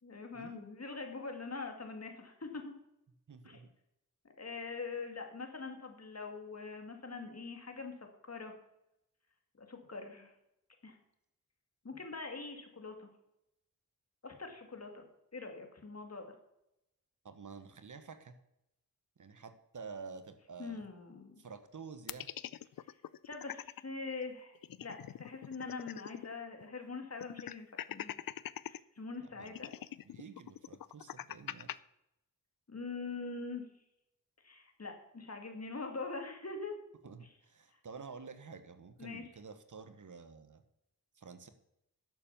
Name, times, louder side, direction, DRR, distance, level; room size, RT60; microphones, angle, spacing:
voice 1, 0.0-2.7 3.4-3.6 4.4-7.9 8.2-8.5 9.6-10.3 10.8-11.0 11.8-13.1 14.2-15.0 15.3-16.3 20.6-21.4 23.2-28.1 28.6-29.7 32.7-33.6 34.4-36.7 39.0-39.2, left 4 dB, 45° left, 5 dB, 2.4 m, -43 dB
voice 2, 3.3-3.7 17.2-18.4 19.2-20.8 21.4-22.3 29.2-29.5 30.0-31.7 37.0-40.6 41.2-41.5, right 5 dB, 60° right, 10 dB, 1.2 m, -50 dB
sound 1, 22.1-23.8 24.2-24.3 24.6-26.3 26.6-26.7 27.2-28.8 29.5-31.8, left 11 dB, 75° left, 0.5 m, -43 dB
11.0 x 7.1 x 7.1 m, 0.84 s
wide cardioid pair, 65°, 35 cm